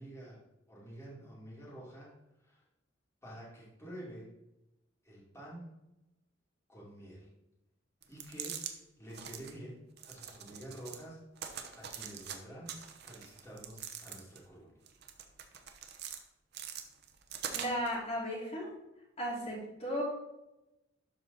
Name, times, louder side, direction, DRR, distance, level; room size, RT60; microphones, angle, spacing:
voice 1, 0.0-2.1 2.4-2.6 3.2-4.4 5.0-5.7 6.7-7.3 8.1-11.2 11.7-14.7, right 1 dB, 15° left, -7 dB, 2.5 m, -49 dB
sound 1, 8.0-8.7 9.1-9.5 10.0-11.0 11.4-12.4 12.7-14.5 14.9-16.2 16.5-18.0, right 8 dB, 55° right, 0.9 m, -43 dB
voice 2, 17.5-18.7 19.2-20.0, equal, 35° left, -5 dB, 2.5 m, -35 dB
12.0 x 4.2 x 4.0 m, 0.93 s
head